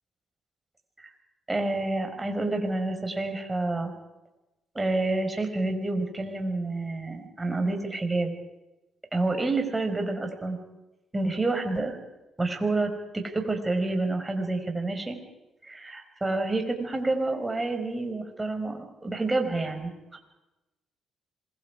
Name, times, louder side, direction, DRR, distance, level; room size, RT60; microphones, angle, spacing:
voice 1, 1.5-3.9 4.8-8.3 9.1-10.6 11.1-12.0 12.4-15.2 15.6-20.2, right 2 dB, 15° right, 4 dB, 5.3 m, -28 dB
26.5 x 22.0 x 4.9 m, 0.99 s
cardioid pair, 90°, 0 cm